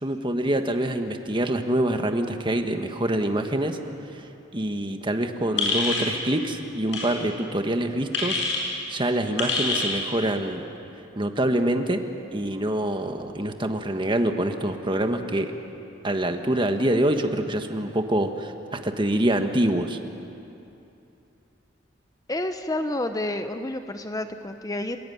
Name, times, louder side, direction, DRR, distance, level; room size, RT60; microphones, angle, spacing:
voice 1, 0.0-3.8 4.5-8.4 8.9-10.7 11.1-12.0 12.3-15.5 16.0-20.0, right 1 dB, 25° right, 6 dB, 1.5 m, -25 dB
sound 1, 5.6-6.1 6.9-7.1 8.1-8.6 9.4-9.9, left 3 dB, 70° left, 7.0 m, -25 dB
voice 2, 22.3-25.0, left 1 dB, 20° left, 8 dB, 0.8 m, -29 dB
30.0 x 17.0 x 9.5 m, 2.8 s
head